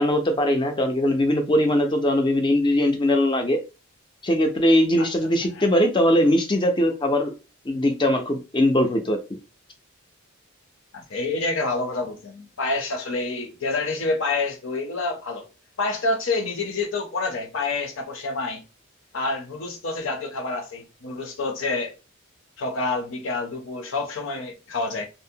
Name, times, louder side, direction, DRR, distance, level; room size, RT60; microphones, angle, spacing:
voice 1, 0.0-3.6 4.2-7.3 7.7-9.4, left 1 dB, 20° left, 0.4 m, -21 dB
voice 2, 5.4-5.7 10.9-15.5 15.8-18.6 19.1-21.9 22.6-25.1, left 3 dB, 60° left, 0.6 m, -28 dB
2.6 x 2.0 x 2.7 m
head